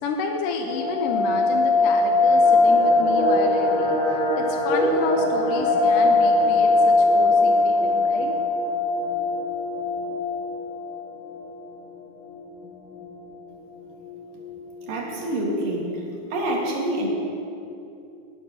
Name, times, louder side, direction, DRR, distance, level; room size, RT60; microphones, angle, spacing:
voice 1, 0.0-4.0 4.4-8.3, left 5 dB, 75° left, 2 dB, 2.4 m, -30 dB
sound 1, 0.7-11.5 11.7-11.8 12.2-12.4 12.8-13.3 13.8-13.9 14.0-14.6 14.9-15.0, left 2 dB, 25° left, 2.1 m, -21 dB
voice 2, 14.9-16.0 16.3-17.1, right 1 dB, 70° right, -2 dB, 3.9 m, -26 dB
19.0 x 9.4 x 6.5 m, 2.7 s
omnidirectional pair, 4.2 m